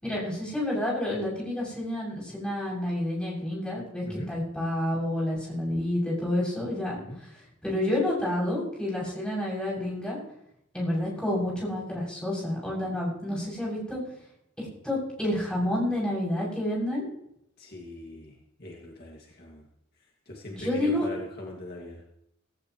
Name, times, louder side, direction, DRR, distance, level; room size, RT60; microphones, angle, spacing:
voice 1, 0.0-10.2 10.7-14.0 14.6-17.0 20.5-21.1, left 1 dB, 5° left, -5 dB, 7.5 m, -29 dB
voice 2, 17.6-18.3 18.6-19.6 20.3-22.0, left 1 dB, 50° left, -2 dB, 2.3 m, -41 dB
17.0 x 16.5 x 3.2 m, 0.77 s
head